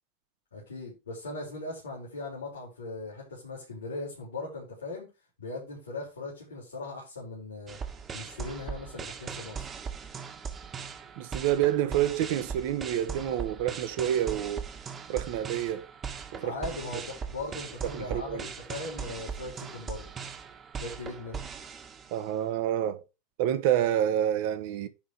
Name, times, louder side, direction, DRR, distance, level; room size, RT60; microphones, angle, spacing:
voice 1, 0.5-5.1 5.4-7.8 8.1-9.7 16.4-20.0 20.8-21.5, left 2 dB, 85° left, 3.8 m, -39 dB
sound 1, 7.7-22.4, right 6 dB, 30° right, 1.6 m, -39 dB
voice 2, 11.2-14.7 15.1-15.9 16.4-16.5 17.9-18.4 22.1-23.0 23.4-24.9, right 11 dB, 60° right, 1.3 m, -28 dB
10.5 x 4.0 x 4.9 m
hypercardioid pair, 85°, 0 cm